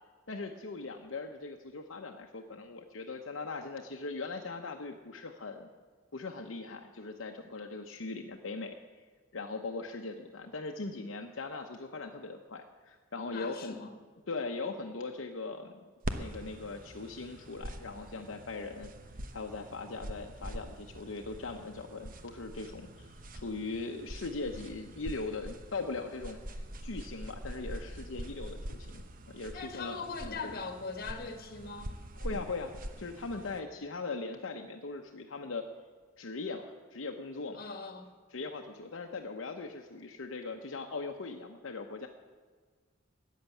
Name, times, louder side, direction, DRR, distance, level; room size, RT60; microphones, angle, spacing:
voice 1, 0.3-5.7 6.1-9.0 9.3-13.8 14.3-15.7 16.1-18.9 19.3-23.1 23.3-30.5 32.2-35.6 36.2-37.6 38.3-42.1, left 3 dB, 75° left, 0.9 m, -40 dB
voice 2, 13.3-13.9 29.5-32.0 37.5-38.1, left 4 dB, 50° left, 1.6 m, -41 dB
sound 1, 16.0-33.6, right 1 dB, 45° right, 1.0 m, -44 dB
13.5 x 9.3 x 8.4 m
head